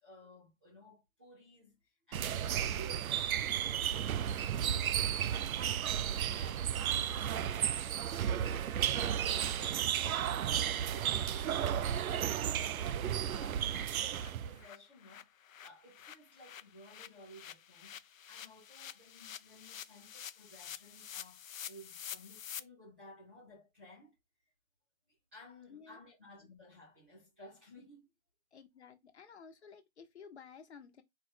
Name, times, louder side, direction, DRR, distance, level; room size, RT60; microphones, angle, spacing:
voice 1, 0.0-3.4 4.4-9.6 9.9-24.1 25.1-28.1, equal, 10° right, 0.7 m, -56 dB
sound 1, 2.1-14.6, right 9 dB, 80° right, 0.5 m, -33 dB
sound 2, 9.6-9.7 10.1-10.2 10.5-10.6 11.0-11.1 11.4-11.5 11.8-12.0 12.3-12.4 12.7-22.6, left 9 dB, 70° left, 0.6 m, -49 dB
voice 2, 25.7-26.0 28.5-31.0, left 6 dB, 50° left, 1.0 m, -54 dB
4.5 x 2.2 x 4.7 m
hypercardioid pair, 165°, 41 cm